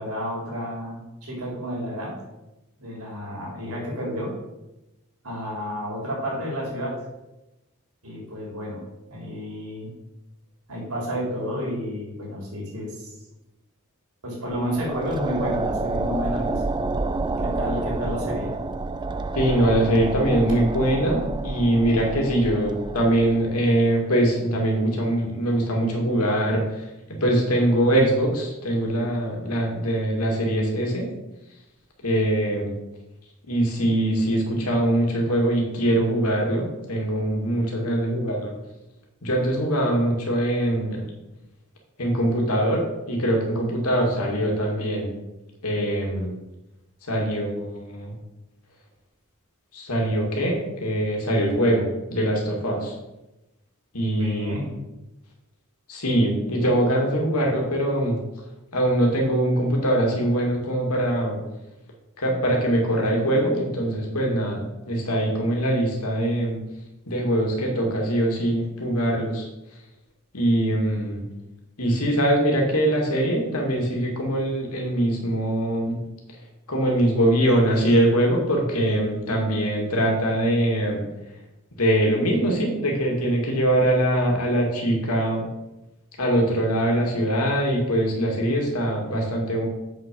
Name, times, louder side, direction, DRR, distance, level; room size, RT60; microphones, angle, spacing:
voice 1, 0.0-2.1 2.8-4.3 5.2-7.0 8.0-8.8 9.1-9.9 10.7-13.1 14.2-16.9 17.4-18.6 54.1-54.7, equal, 85° right, -2 dB, 3.6 m, -31 dB
sound 1, 14.5-23.8, right 3 dB, 20° right, 0.4 m, -29 dB
voice 2, 19.4-26.6 27.2-31.1 32.0-32.7 33.5-38.5 39.2-41.1 42.0-45.1 45.6-46.3 47.1-48.1 49.7-52.9 53.9-54.5 55.9-58.2 58.7-61.4 62.2-66.6 67.1-69.5 70.3-71.3 71.8-76.0 76.7-81.0 81.8-85.4 86.2-89.7, right 1 dB, 85° left, 0 dB, 2.4 m, -22 dB
7.6 x 6.1 x 5.4 m, 0.98 s
head